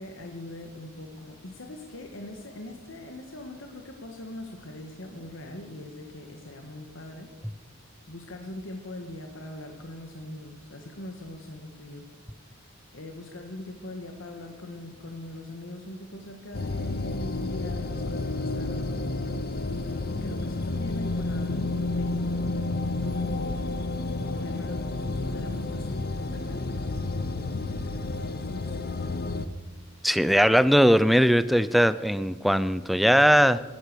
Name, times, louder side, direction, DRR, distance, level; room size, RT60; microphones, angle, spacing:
voice 1, 0.0-7.3 8.1-12.1 12.4-19.0 19.6-23.7 24.1-29.2, left 1 dB, 65° left, 3 dB, 1.6 m, -41 dB
sound 1, 16.5-29.5, left 2 dB, 50° left, 0.8 m, -30 dB
voice 2, 30.0-33.6, equal, ahead, 15 dB, 0.5 m, -20 dB
15.5 x 11.5 x 6.8 m, 1.3 s
head